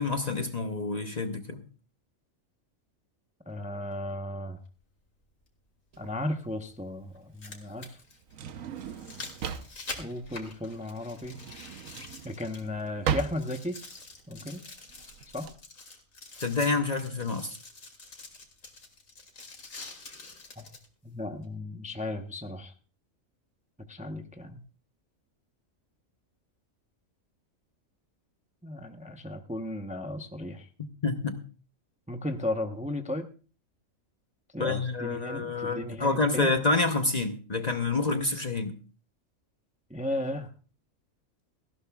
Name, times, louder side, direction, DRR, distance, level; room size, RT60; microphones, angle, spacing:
voice 1, 0.0-1.6 16.4-17.6 31.0-31.4 34.6-38.8, left 3 dB, 35° left, 6 dB, 0.9 m, -28 dB
voice 2, 3.5-4.6 6.0-8.0 10.0-11.4 12.2-13.8 14.3-14.6 15.3-15.5 20.6-20.7 21.0-22.7 23.9-24.6 28.6-30.7 32.1-33.3 34.5-36.5 39.9-40.5, left 1 dB, 5° right, 6 dB, 0.7 m, -35 dB
sound 1, 3.9-4.0 5.9-6.0 7.2-12.9 13.2-20.9 21.4-21.5, left 3 dB, 85° left, 2.7 m, -46 dB
Drawer open or close, 5.9-15.5, right 8 dB, 85° right, 1.2 m, -37 dB
17.5 x 15.5 x 2.3 m, 0.36 s
omnidirectional pair, 1.4 m